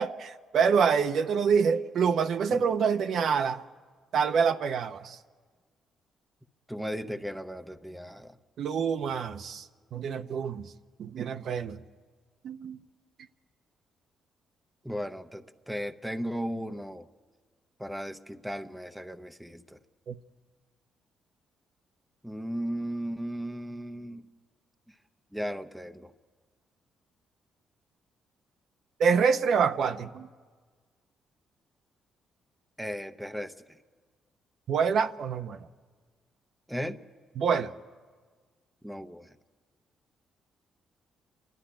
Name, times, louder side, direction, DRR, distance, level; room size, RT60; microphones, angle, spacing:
voice 1, 0.0-3.6 4.1-5.2 8.6-9.7 9.9-10.7 11.0-11.8 12.4-12.8 20.1-20.2 29.0-30.3 34.7-35.6 37.4-37.7, right 6 dB, 65° right, 0.8 m, -26 dB
voice 2, 6.7-8.4 14.8-17.1 17.8-19.8 22.2-24.3 25.3-26.1 32.8-33.5 36.7-37.0 38.8-39.3, equal, 5° right, 0.8 m, -36 dB
29.5 x 12.0 x 10.0 m
cardioid pair, 90°, 0 cm